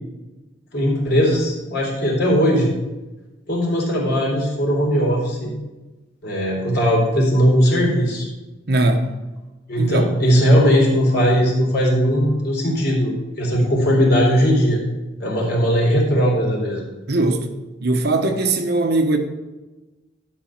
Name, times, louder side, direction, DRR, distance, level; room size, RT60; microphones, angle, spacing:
voice 1, 0.7-2.7 3.5-5.5 6.2-8.3 9.7-14.8 15.2-16.8, equal, 55° left, -2 dB, 3.7 m, -18 dB
voice 2, 8.7-9.1 9.8-10.1 17.1-17.5 17.8-19.2, right 2 dB, 55° right, 5 dB, 1.1 m, -19 dB
12.0 x 5.6 x 5.9 m, 1.1 s
head